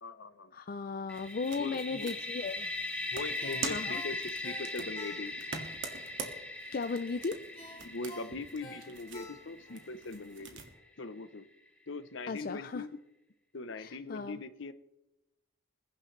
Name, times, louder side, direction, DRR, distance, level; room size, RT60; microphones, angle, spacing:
voice 1, 0.0-0.5 1.6-2.1 3.1-5.4 7.8-10.6 11.0-11.5 11.9-12.9 13.5-14.7, left 3 dB, 65° left, 12 dB, 0.8 m, -41 dB
voice 2, 0.5-2.7 3.7-4.0 6.7-7.3 12.3-12.9 13.8-14.4, left 4 dB, 45° left, 9 dB, 0.4 m, -36 dB
sound 1, 1.1-10.8, left 2 dB, 5° left, 1.3 m, -40 dB
sound 2, 1.1-10.7, right 5 dB, 65° right, 1.9 m, -45 dB
Ringtone, 3.4-5.6 6.0-6.1 7.6-9.8 10.2-10.3, left 1 dB, 30° left, 4.7 m, -49 dB
21.5 x 10.5 x 3.2 m, 0.93 s
head